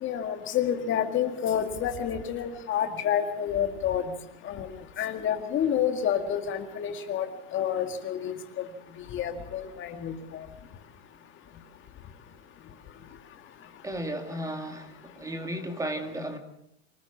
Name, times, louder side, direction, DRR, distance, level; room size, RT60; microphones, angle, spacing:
voice 1, 0.0-4.1 4.4-4.7 5.0-7.3 7.5-8.6 9.1-10.5, left 9 dB, 35° left, 6 dB, 2.0 m, -29 dB
voice 2, 13.8-14.9 15.2-16.4, right 1 dB, 10° right, 6 dB, 2.1 m, -34 dB
25.0 x 14.5 x 7.2 m, 0.81 s
supercardioid pair, 130°, 34 cm